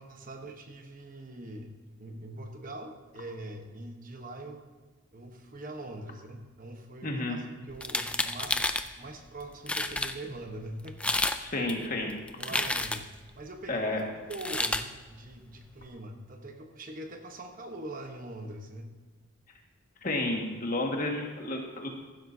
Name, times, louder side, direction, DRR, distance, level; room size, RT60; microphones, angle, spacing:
voice 1, 0.0-1.7 2.0-4.6 5.1-8.7 9.0-11.0 12.4-13.9 14.3-18.9, right 1 dB, 40° right, 4 dB, 1.1 m, -43 dB
voice 2, 7.0-7.4 11.4-12.1 12.5-12.6 13.7-14.0 20.0-21.9, left 2 dB, 40° left, 1 dB, 1.8 m, -31 dB
sound 1, 7.7-8.9 9.4-9.5 9.7-10.1 10.9-11.4 11.7-13.2 14.3-14.8, left 2 dB, 5° left, 0.4 m, -30 dB
15.5 x 12.0 x 2.8 m, 1.4 s
head